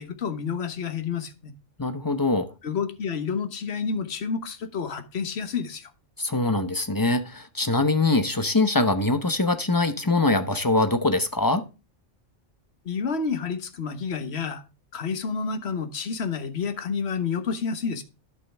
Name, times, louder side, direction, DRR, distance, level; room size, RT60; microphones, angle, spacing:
voice 1, 0.0-1.5 2.6-5.9 12.8-14.6 14.9-18.0, left 5 dB, 60° left, 1.4 m, -29 dB
voice 2, 1.8-2.5 6.2-11.6, left 2 dB, 20° left, 0.8 m, -23 dB
11.0 x 6.3 x 3.4 m
omnidirectional pair, 1.3 m